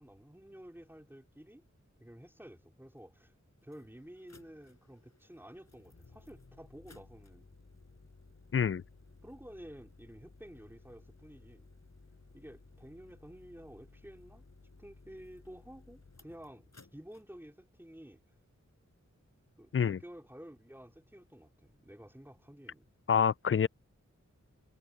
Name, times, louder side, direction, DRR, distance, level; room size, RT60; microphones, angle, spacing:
voice 1, 0.0-1.7 2.0-3.3 3.6-7.5 9.2-11.7 12.3-14.4 14.8-18.2 19.6-22.9, equal, 5° right, 4.1 m, -52 dB
sound 1, 3.0-3.1 3.6-17.2, left 3 dB, 60° left, 6.2 m, -59 dB
voice 2, 8.5-8.8 19.7-20.0 23.1-23.7, left 7 dB, 45° left, 0.4 m, -27 dB
wide cardioid pair, 65°, 30 cm